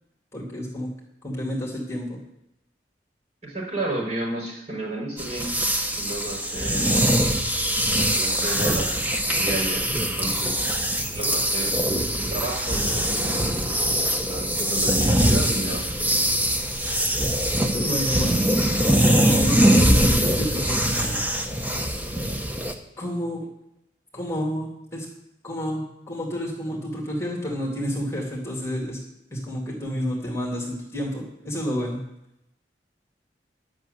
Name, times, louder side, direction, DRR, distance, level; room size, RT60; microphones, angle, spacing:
voice 1, 0.3-0.9 1.2-2.2 17.5-18.4 18.8-21.2 23.0-23.5 24.1-25.1 25.4-29.0 29.3-32.0, equal, 15° left, -2 dB, 2.4 m, -30 dB
voice 2, 3.4-5.5 5.9-7.0 8.1-9.0 9.3-10.8 11.1-11.8 12.1-13.7 14.1-16.2, right 2 dB, 45° right, -3 dB, 5.1 m, -32 dB
sound 1, 5.2-22.7, equal, 10° right, 0.9 m, -22 dB
11.5 x 6.5 x 7.9 m, 0.84 s
head